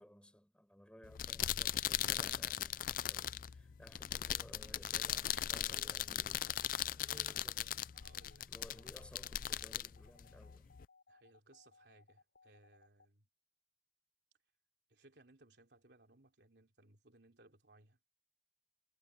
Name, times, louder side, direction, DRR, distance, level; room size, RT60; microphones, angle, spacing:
voice 1, 0.0-7.7 8.5-10.7, equal, 5° left, 4.8 m, -59 dB
sound 1, 1.0-10.9, left 11 dB, 50° left, 0.4 m, -39 dB
voice 2, 7.0-7.5 7.9-9.0 11.1-13.3 14.9-18.0, right 2 dB, 70° right, 3.4 m, -65 dB
sound 2, 7.9-13.1, left 4 dB, 70° left, 7.7 m, -66 dB
head